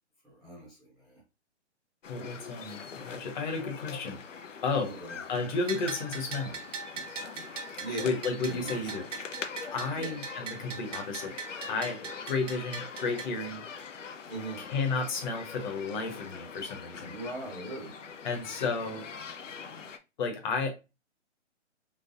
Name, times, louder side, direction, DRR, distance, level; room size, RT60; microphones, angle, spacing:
voice 1, 0.2-1.2 4.8-5.2 7.8-8.2 8.5-9.0 9.9-10.2 14.3-14.7 17.0-18.0, right 2 dB, ahead, 0.6 m, -40 dB
sound 1, 2.0-20.0, left 6 dB, 90° left, 0.7 m, -43 dB
voice 2, 2.1-4.2 4.6-4.9 5.3-6.6 8.0-9.1 9.7-11.3 11.7-12.0 12.3-13.6 14.6-17.1 18.2-19.0 20.2-20.7, left 4 dB, 40° left, 1.1 m, -32 dB
Bell, 5.7-13.3, right 6 dB, 80° right, 1.0 m, -41 dB
3.8 x 3.3 x 2.5 m
hypercardioid pair, 140°, 36 cm